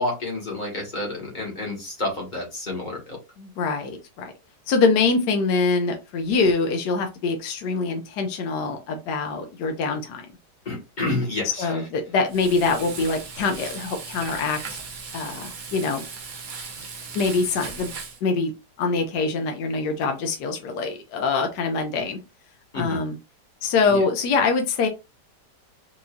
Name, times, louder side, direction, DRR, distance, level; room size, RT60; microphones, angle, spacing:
voice 1, 0.0-3.2 10.6-11.8 22.7-23.0 23.9-24.0, left 2 dB, 30° left, 0 dB, 1.3 m, -29 dB
voice 2, 3.4-4.3 4.7-10.3 11.6-14.8 15.1-16.0 17.1-17.9 18.2-18.5 18.8-22.2 22.7-23.2 23.6-24.9, left 4 dB, 75° left, 5 dB, 1.3 m, -24 dB
Frying (food), 12.3-18.2, right 5 dB, 70° right, 0.4 m, -37 dB
4.7 x 2.6 x 2.4 m, 0.26 s
omnidirectional pair, 1.9 m